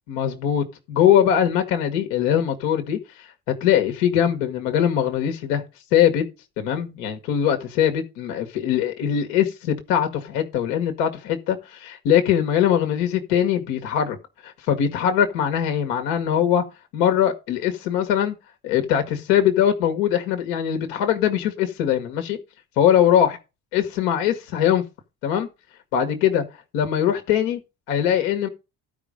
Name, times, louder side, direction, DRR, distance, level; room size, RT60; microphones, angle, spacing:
voice 1, 0.1-3.0 3.5-5.6 5.9-6.2 6.6-14.2 14.4-16.6 16.9-18.3 18.6-22.4 22.8-23.4 23.7-24.8 25.2-25.5 25.9-26.4 26.7-27.6 27.9-28.5, left 9 dB, 75° left, 1.5 m, -21 dB
13.0 x 5.1 x 5.2 m
hypercardioid pair, 55°, 43 cm